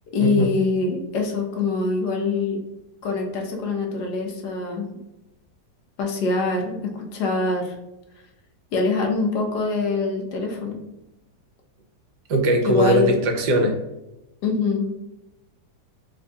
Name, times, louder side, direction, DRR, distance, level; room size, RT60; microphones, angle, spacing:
voice 1, 0.1-2.6 3.0-4.9 6.0-7.8 8.7-10.8 12.6-13.1 14.4-14.9, left 4 dB, 70° left, 2 dB, 1.2 m, -24 dB
voice 2, 12.3-13.7, right 1 dB, 70° right, 2 dB, 1.2 m, -20 dB
3.5 x 2.2 x 3.9 m, 0.95 s
omnidirectional pair, 2.0 m